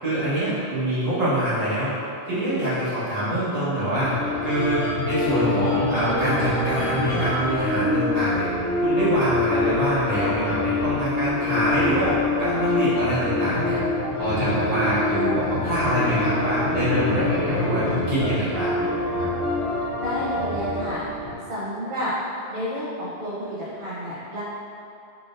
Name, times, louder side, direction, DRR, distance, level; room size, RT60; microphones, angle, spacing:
voice 1, 0.0-2.0 2.2-4.1 4.4-8.5 8.8-13.8 14.2-18.8 19.2-19.4, right 1 dB, 40° right, -11 dB, 1.3 m, -25 dB
sound 1, 4.0-21.3, left 2 dB, 90° left, 0.9 m, -25 dB
voice 2, 20.0-21.0 21.5-22.1 22.5-24.4, equal, 60° right, -9 dB, 0.8 m, -30 dB
4.0 x 3.5 x 2.4 m, 2.5 s
omnidirectional pair, 1.1 m